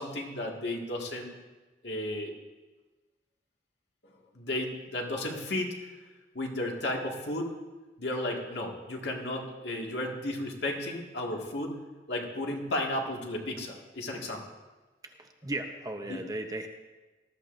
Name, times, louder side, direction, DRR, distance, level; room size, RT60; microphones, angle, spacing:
voice 1, 0.0-1.3 1.8-2.3 4.3-5.9 6.3-7.5 8.0-11.8 12.1-14.4 16.1-16.2, left 1 dB, 70° left, 0 dB, 2.0 m, -33 dB
voice 2, 15.0-16.7, right 1 dB, 20° right, 4 dB, 0.8 m, -36 dB
19.5 x 13.5 x 2.6 m, 1.2 s
head